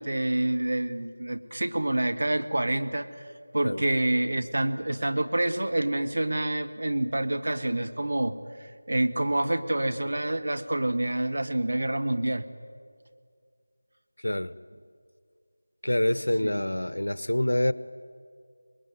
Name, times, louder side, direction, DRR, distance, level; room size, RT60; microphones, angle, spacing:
voice 1, 0.0-3.1 3.5-8.4 8.9-12.4 16.4-16.6, right 1 dB, 55° right, 1.6 m, -27 dB
voice 2, 15.8-17.7, left 1 dB, 70° left, 1.0 m, -26 dB
25.0 x 21.0 x 9.4 m
figure-of-eight pair, 170°, 0 cm